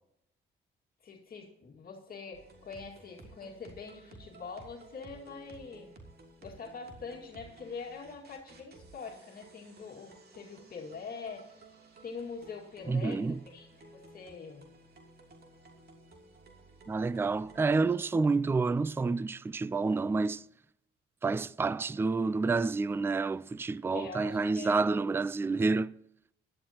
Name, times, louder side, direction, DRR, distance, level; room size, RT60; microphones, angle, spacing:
voice 1, 1.0-5.9 6.4-11.5 12.0-13.2 13.5-14.6 23.9-24.8, left 5 dB, 50° left, 2.1 m, -44 dB
sound 1, 2.3-17.9, right 2 dB, 55° right, 2.8 m, -55 dB
voice 2, 12.9-13.4 16.9-20.5 21.2-26.0, right 4 dB, 10° right, 0.3 m, -29 dB
16.5 x 11.5 x 2.9 m
cardioid pair, 90°, 20 cm